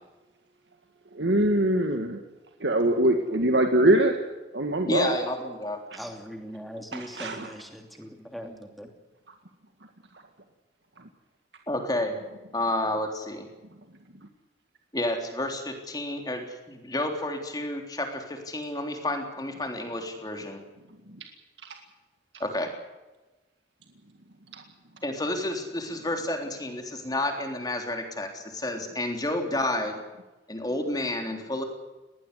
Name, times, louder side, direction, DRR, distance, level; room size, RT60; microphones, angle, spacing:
voice 1, 1.1-2.2 2.6-4.2 4.5-5.2 7.1-7.5 24.5-24.6, right 1 dB, 90° right, 5 dB, 2.0 m, -23 dB
voice 2, 4.9-5.8 11.7-12.2 12.5-13.5 14.9-20.6 22.4-22.7 25.0-30.0 30.5-31.6, left 1 dB, 20° left, 4 dB, 3.5 m, -30 dB
voice 3, 5.9-8.9, equal, ahead, 4 dB, 2.9 m, -40 dB
20.5 x 18.5 x 8.2 m, 1.1 s
head